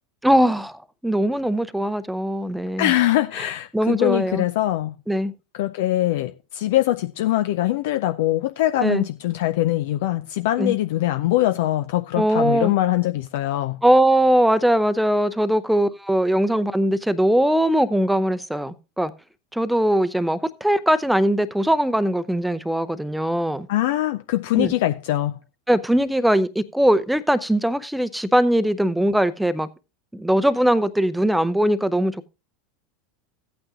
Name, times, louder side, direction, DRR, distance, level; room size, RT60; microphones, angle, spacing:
voice 1, 0.2-2.9 3.7-4.4 5.1-5.3 8.8-9.0 10.6-10.8 12.1-12.7 13.8-19.1 19.5-23.7 24.6-24.7 25.7-29.7 30.1-32.3, right 1 dB, 5° right, 0.7 m, -20 dB
voice 2, 2.8-4.9 5.5-13.8 23.7-25.4, left 14 dB, 60° left, 0.4 m, -22 dB
15.0 x 8.8 x 2.5 m
figure-of-eight pair, 80°, 0 cm